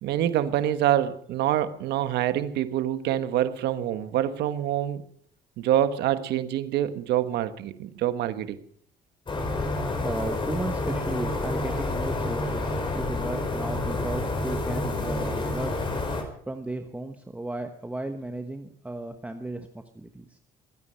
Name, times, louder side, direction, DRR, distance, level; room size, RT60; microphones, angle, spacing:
voice 1, 0.0-5.0 5.6-8.6, right 11 dB, 80° right, 11 dB, 1.3 m, -26 dB
sound 1, 9.3-16.2, left 2 dB, 30° left, 4.4 m, -29 dB
voice 2, 10.0-15.7 16.5-20.4, right 2 dB, 10° right, 6 dB, 1.2 m, -35 dB
23.0 x 9.7 x 5.6 m, 0.62 s
cardioid pair, 110°, 17 cm